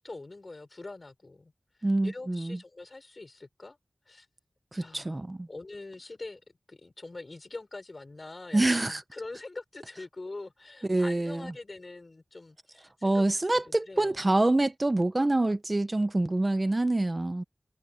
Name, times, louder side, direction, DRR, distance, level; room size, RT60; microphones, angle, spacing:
voice 1, 0.0-1.5 1.8-3.8 4.1-4.3 4.7-6.4 6.7-13.2 13.5-14.2, left 2 dB, 45° left, 6.1 m, -44 dB
voice 2, 1.8-2.6 4.7-5.5 8.5-9.0 10.9-11.5 13.0-17.4, right 2 dB, 30° right, 0.9 m, -26 dB
wide cardioid pair, 95°, 0 cm